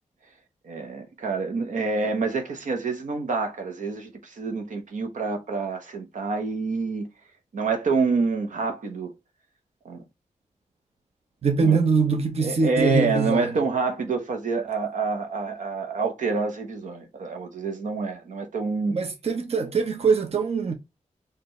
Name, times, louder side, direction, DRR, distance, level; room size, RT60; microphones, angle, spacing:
voice 1, 0.6-7.1 7.5-9.1 9.8-10.0 11.6-11.8 12.4-19.0, right 4 dB, 85° right, 1.0 m, -27 dB
voice 2, 11.4-13.5 18.9-20.7, right 5 dB, 55° right, 0.8 m, -23 dB
4.4 x 2.6 x 3.1 m
wide cardioid pair, 95°, 13 cm